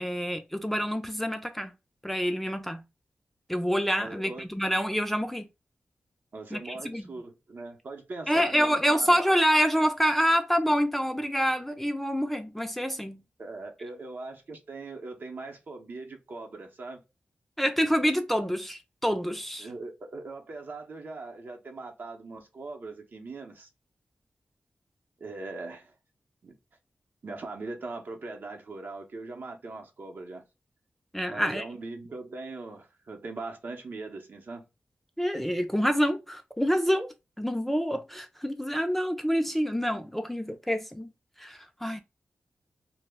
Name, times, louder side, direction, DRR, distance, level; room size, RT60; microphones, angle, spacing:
voice 1, 0.0-1.7 2.0-2.8 3.5-5.5 6.5-7.0 8.3-13.2 17.6-19.7 31.1-31.6 35.2-41.1 41.4-42.0, equal, 5° left, 0.3 m, -27 dB
voice 2, 4.0-4.5 6.3-9.2 13.4-17.0 19.6-23.7 25.2-26.0 26.4-26.5 27.2-30.4 31.3-34.6, right 3 dB, 60° right, 0.6 m, -40 dB
2.1 x 2.0 x 3.3 m
wide cardioid pair, 75°, 4 cm